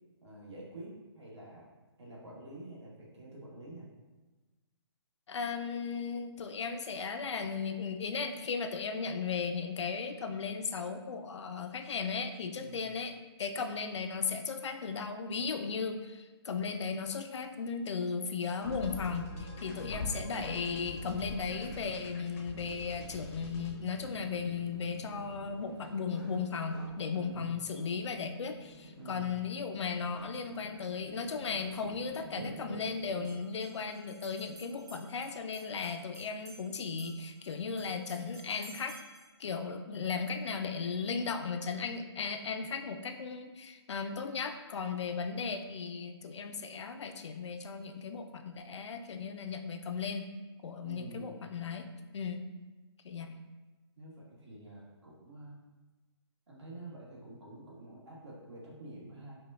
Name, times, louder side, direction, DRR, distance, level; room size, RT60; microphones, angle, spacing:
voice 1, 0.2-1.7 2.0-3.9 12.6-12.8 19.6-20.1 27.1-27.5 29.0-29.3 50.8-51.4 54.0-55.6 56.5-59.4, right 2 dB, 75° right, -5 dB, 1.4 m, -48 dB
voice 2, 5.3-13.1 13.4-39.0 39.4-50.3 50.6-52.4 53.0-53.4, left 5 dB, 85° left, 7 dB, 0.4 m, -36 dB
sound 1, 18.6-25.9, left 2 dB, 30° left, 0.5 m, -44 dB
sound 2, 22.5-33.3, right 1 dB, 60° right, 1.3 m, -50 dB
sound 3, 33.1-39.3, right 2 dB, 40° right, 0.8 m, -55 dB
5.0 x 2.2 x 2.4 m, 1.2 s
hypercardioid pair, 170°, 14 cm